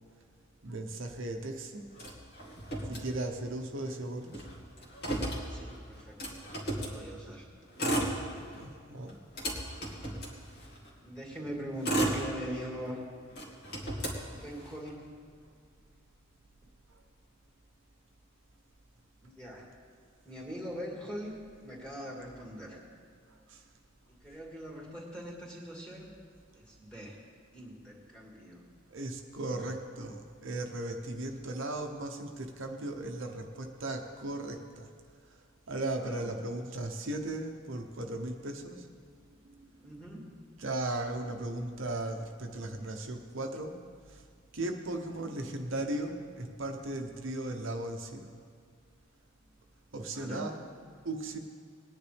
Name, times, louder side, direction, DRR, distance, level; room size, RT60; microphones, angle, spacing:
voice 1, 0.6-1.8 2.8-4.4 8.5-9.5 23.5-23.6 28.9-34.9 35.3-35.4 35.7-38.9 39.4-39.7 40.6-43.8 44.1-44.2 44.5-48.3 49.9-50.5 51.0-51.4, right 2 dB, 60° right, 3 dB, 0.9 m, -37 dB
Motor vehicle (road), 2.0-3.6 3.9-4.0 4.2-7.0 7.6-8.7 9.1-10.9 11.5-12.9 13.3-14.9, right 1 dB, 50° left, 2.2 m, -34 dB
voice 2, 5.5-6.4 6.7-7.5 11.0-13.0 14.3-15.0 19.2-19.7 20.2-21.4 21.6-22.8 24.1-26.1 26.5-27.2 27.5-28.6 29.4-29.7 36.0-36.3 39.8-40.3 45.4-45.5 50.1-50.5, equal, 5° left, -3 dB, 2.4 m, -42 dB
21.0 x 9.9 x 3.4 m, 2.1 s
head